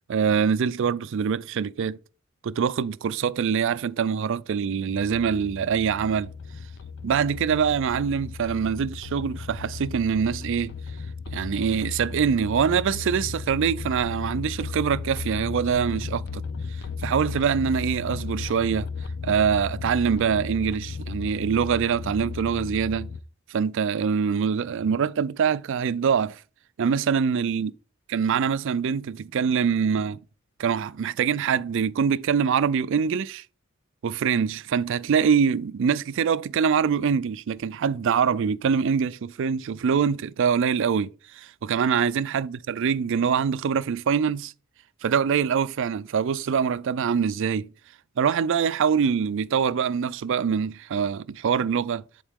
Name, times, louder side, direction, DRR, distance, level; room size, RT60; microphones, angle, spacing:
voice 1, 0.1-2.0 2.4-6.3 7.0-10.7 11.3-16.4 17.0-18.9 19.2-23.1 23.5-26.4 26.8-27.7 28.1-30.2 30.6-33.4 34.0-44.5 45.0-47.7 48.2-52.0, right 7 dB, 65° right, 0.4 m, -24 dB
sound 1, 4.9-23.2, left 4 dB, 55° left, 0.4 m, -35 dB
10.0 x 4.5 x 3.6 m
head